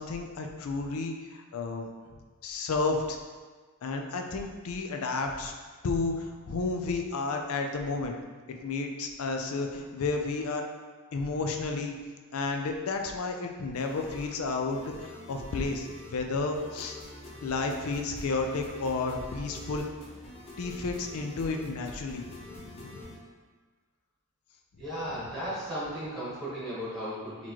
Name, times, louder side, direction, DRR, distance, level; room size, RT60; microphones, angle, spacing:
voice 1, 0.0-1.9 2.4-3.2 3.8-5.5 5.8-8.1 8.5-10.6 11.1-11.9 12.3-17.0 17.4-19.8 20.6-23.1, left 3 dB, 70° left, 4 dB, 0.4 m, -32 dB
sound 1, 13.7-23.2, left 1 dB, 30° left, 0.7 m, -47 dB
voice 2, 24.8-27.5, equal, ahead, -10 dB, 1.3 m, -35 dB
4.1 x 2.9 x 2.9 m, 1.4 s
head